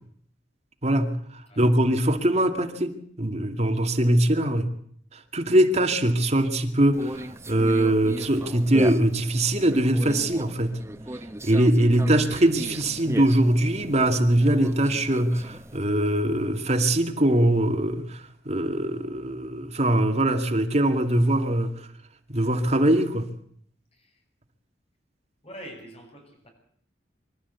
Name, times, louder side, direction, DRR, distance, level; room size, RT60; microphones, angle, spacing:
voice 1, 0.8-4.7 5.1-10.8 11.4-21.9 22.3-23.3, right 1 dB, 40° right, 2.3 m, -22 dB
Conversation, 6.9-15.8, right 1 dB, 15° right, 0.8 m, -37 dB
voice 2, 23.9-24.2 25.4-26.5, equal, 35° left, 7.4 m, -44 dB
25.5 x 13.0 x 8.4 m
head